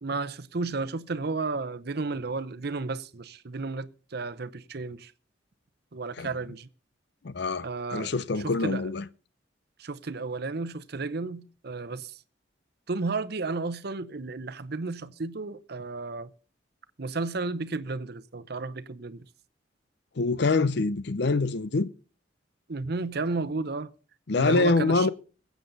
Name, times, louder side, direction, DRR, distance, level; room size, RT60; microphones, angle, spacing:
voice 1, 0.0-5.1 5.9-6.7 7.6-8.1 8.4-8.9 9.8-12.1 12.9-16.3 17.0-19.3 22.7-23.9 24.3-25.1, right 3 dB, 60° right, 0.8 m, -33 dB
voice 2, 7.2-9.1 20.2-21.9 24.3-25.1, left 3 dB, 65° left, 0.7 m, -25 dB
21.5 x 8.3 x 4.0 m
head